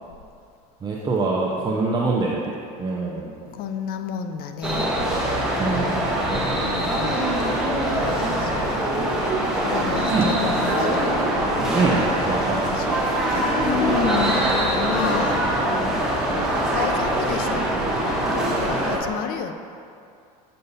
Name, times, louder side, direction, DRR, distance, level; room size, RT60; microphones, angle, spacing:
voice 1, 0.8-3.4 5.6-6.0 10.1-10.3 11.7-13.0, right 3 dB, 20° right, -3 dB, 0.6 m, -24 dB
voice 2, 3.5-4.9 6.6-7.2 8.0-8.6 9.5-11.0 12.6-15.4 16.7-17.7 18.3-19.5, left 7 dB, 50° left, 8 dB, 0.5 m, -30 dB
sound 1, 4.6-19.0, right 1 dB, 5° right, 1.2 m, -23 dB
7.8 x 5.5 x 2.7 m, 2.5 s
supercardioid pair, 100°, 20 cm